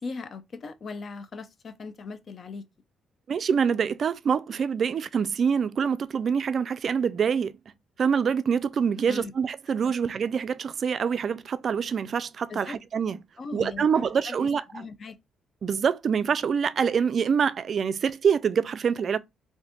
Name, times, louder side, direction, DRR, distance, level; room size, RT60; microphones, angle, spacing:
voice 1, 0.0-2.6 9.1-9.3 12.5-12.8 13.4-15.2, left 4 dB, 45° left, 0.4 m, -39 dB
voice 2, 3.3-7.5 8.0-13.2 13.5-14.9 15.6-19.2, right 6 dB, 50° right, 0.3 m, -25 dB
2.6 x 2.4 x 3.5 m
cardioid pair, 90°, 0 cm